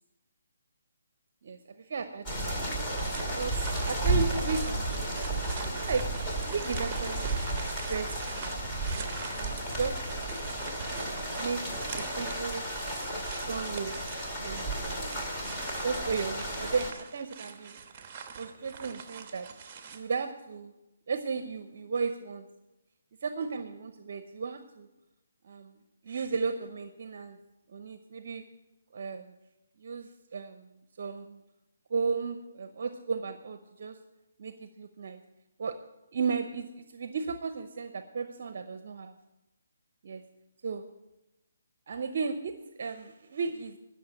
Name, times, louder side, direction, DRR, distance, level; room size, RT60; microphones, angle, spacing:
voice 1, 1.9-2.2 3.3-5.2 5.7-6.0 6.5-7.4 7.7-8.5 8.9-10.0 10.9-11.6 11.9-12.6 13.5-14.0 14.4-14.7 15.8-17.8 18.4-19.5 19.9-20.7 21.1-22.5 23.2-24.9 25.4-25.7 26.0-27.4 27.7-28.4 28.9-29.3 29.8-30.7 31.0-31.4 31.9-34.0 34.4-35.2 35.6-35.8 36.1-39.1 40.0-40.2 40.6-40.8 41.9-42.5 42.8-43.8, right 5 dB, 55° right, 9 dB, 0.8 m, -34 dB
sound 1, 2.3-16.9, right 1 dB, 15° left, 2.1 m, -33 dB
sound 2, 3.0-20.0, right 6 dB, 30° right, 1.2 m, -45 dB
11.5 x 6.5 x 8.7 m, 0.98 s
hypercardioid pair, 155°, 0 cm